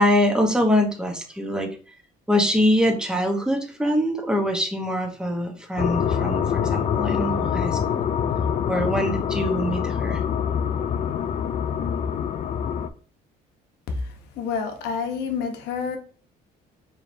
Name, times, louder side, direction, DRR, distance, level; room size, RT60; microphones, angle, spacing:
voice 1, 0.0-1.7 2.3-8.0 8.7-10.2, equal, 5° right, 0.9 m, -23 dB
sound 1, 5.8-12.9, left 8 dB, 40° left, 0.4 m, -25 dB
voice 2, 13.9-16.0, left 5 dB, 80° left, 0.9 m, -29 dB
4.6 x 3.2 x 2.6 m
cardioid pair, 110°, 17 cm